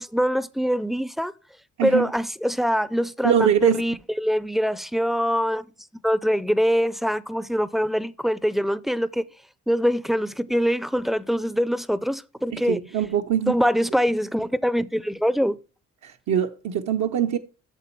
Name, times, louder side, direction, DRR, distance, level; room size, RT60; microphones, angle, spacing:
voice 1, 0.0-1.3 1.8-5.7 5.9-9.3 9.7-12.8 13.5-15.6, equal, ahead, 0.4 m, -24 dB
voice 2, 1.8-2.1 3.2-3.8 12.5-13.5 16.0-17.4, right 8 dB, 70° right, 0.7 m, -23 dB
8.3 x 6.8 x 4.5 m
cardioid pair, 90°, 30 cm